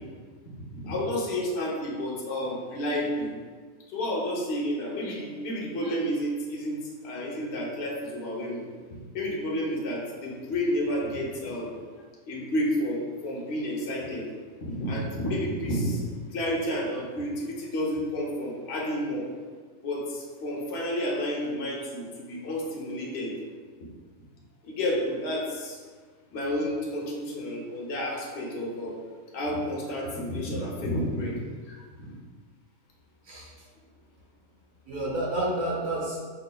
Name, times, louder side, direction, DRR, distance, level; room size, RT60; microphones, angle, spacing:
voice 1, 0.6-3.3 3.9-8.6 9.1-11.8 12.3-14.3 14.6-16.0 16.3-19.3 19.8-23.3 24.6-25.8 26.3-28.9 29.3-31.4 31.7-31.8, equal, 50° left, -4 dB, 0.9 m, -30 dB
voice 2, 33.2-33.7 34.8-36.3, right 1 dB, 80° right, -4 dB, 1.4 m, -30 dB
5.6 x 2.4 x 2.2 m, 1.5 s
omnidirectional pair, 1.5 m